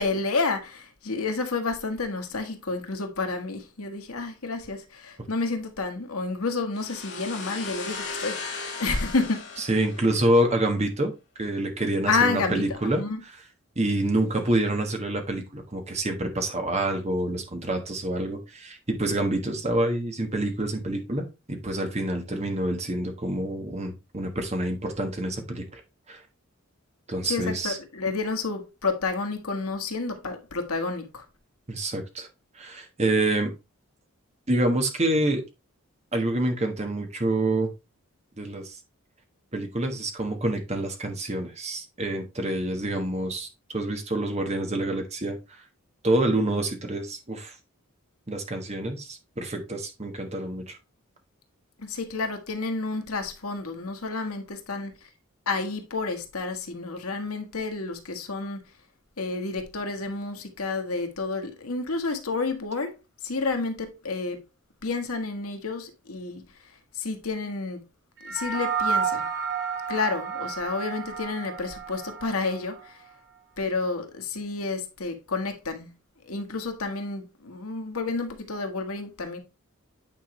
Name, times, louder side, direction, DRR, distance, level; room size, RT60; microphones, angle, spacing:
voice 1, 0.0-9.4 12.1-12.6 13.0-13.2 27.3-31.2 51.8-54.9 55.5-58.6 59.2-62.9 63.2-64.4 64.8-66.4 67.0-67.8 68.2-69.3 69.9-73.0 73.6-75.9 76.3-79.4, left 3 dB, 85° left, 1.5 m, -30 dB
sound 1, 6.8-10.5, left 4 dB, 50° left, 2.1 m, -37 dB
voice 2, 9.6-13.0 13.7-25.8 26.1-26.2 27.1-27.8 31.7-32.3 32.5-33.5 34.5-35.4 36.1-37.7 38.4-38.8 39.5-45.6 46.0-47.5 48.3-50.8, right 1 dB, 30° right, 1.4 m, -27 dB
sound 2, 68.2-72.8, right 6 dB, 55° right, 4.0 m, -31 dB
9.0 x 4.8 x 3.2 m
head